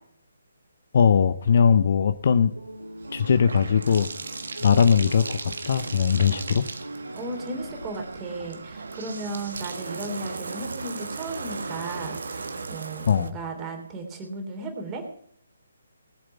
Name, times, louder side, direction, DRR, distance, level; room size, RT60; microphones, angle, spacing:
voice 1, 0.9-2.5 3.1-4.1 4.6-6.6 13.1-13.3, left 7 dB, 45° left, 12 dB, 0.8 m, -20 dB
Bathtub (filling or washing), 2.0-13.3, right 4 dB, 55° right, 1.4 m, -37 dB
sound 1, 2.2-8.4, right 1 dB, 85° right, 2.2 m, -41 dB
voice 2, 7.1-15.0, right 2 dB, 15° right, 3 dB, 3.2 m, -35 dB
20.5 x 7.8 x 5.7 m, 0.64 s
figure-of-eight pair, 140°, 0 cm